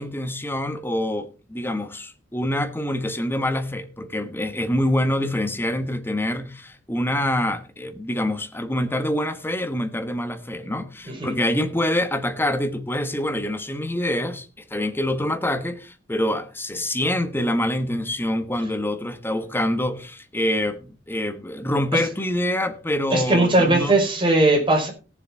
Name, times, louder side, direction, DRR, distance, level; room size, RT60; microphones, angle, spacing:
voice 1, 0.0-23.9, left 1 dB, 10° left, 1.3 m, -26 dB
voice 2, 23.1-24.9, right 2 dB, 30° right, 4.9 m, -19 dB
17.5 x 7.3 x 4.3 m
head